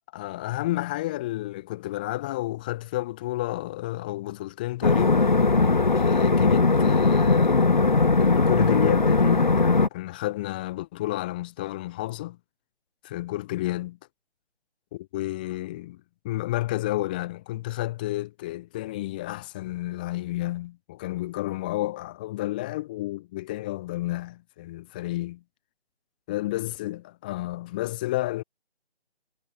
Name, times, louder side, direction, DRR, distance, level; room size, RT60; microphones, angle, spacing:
voice 1, 0.1-5.3 5.9-7.9 8.2-12.4 13.0-14.0 14.9-25.4 26.3-28.4, left 17 dB, 10° left, 1.7 m, -31 dB
sound 1, 4.8-9.9, left 3 dB, 45° left, 0.6 m, -20 dB
figure-of-eight pair, 165°, 34 cm